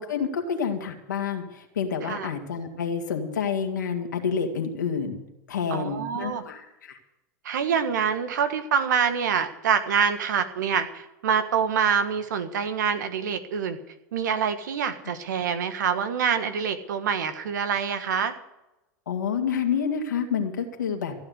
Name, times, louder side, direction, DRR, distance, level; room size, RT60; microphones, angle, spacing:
voice 1, 0.0-5.2 5.5-7.0 19.1-21.1, left 6 dB, 90° left, 2 dB, 2.2 m, -28 dB
voice 2, 5.7-6.4 7.4-13.8 14.1-18.3, right 7 dB, 80° right, 9 dB, 1.6 m, -26 dB
15.5 x 8.7 x 8.0 m, 0.95 s
hypercardioid pair, 90°, 10 cm